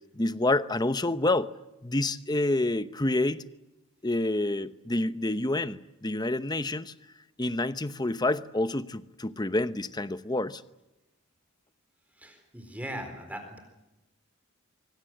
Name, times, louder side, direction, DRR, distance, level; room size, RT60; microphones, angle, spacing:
voice 1, 0.1-1.5 1.8-3.4 4.0-6.9 7.4-10.6, left 2 dB, 20° left, 12 dB, 0.8 m, -28 dB
voice 2, 12.1-13.6, right 1 dB, 5° right, 5 dB, 4.1 m, -39 dB
25.0 x 24.5 x 7.8 m, 0.97 s
head